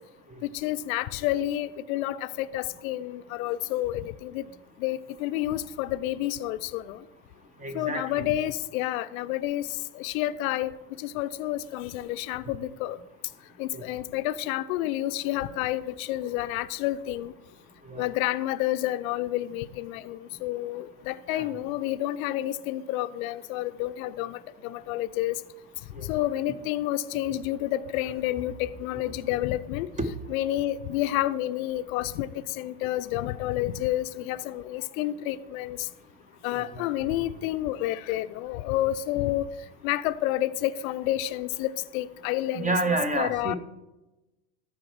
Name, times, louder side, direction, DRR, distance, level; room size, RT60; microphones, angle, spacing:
voice 1, 0.4-4.5 4.8-7.0 7.7-9.7 9.9-10.7 11.0-13.0 13.6-17.3 18.0-25.4 26.0-29.9 30.3-35.9 36.4-39.5 39.8-42.7 43.2-43.6, left 14 dB, 60° left, 14 dB, 0.6 m, -29 dB
voice 2, 7.6-8.2 13.7-13.8 17.8-18.1 21.3-21.5 25.9-26.0 30.0-30.1 36.7-36.8 42.5-43.6, right 2 dB, 15° right, 8 dB, 1.1 m, -29 dB
13.0 x 4.7 x 4.7 m, 1.0 s
hypercardioid pair, 90°, 47 cm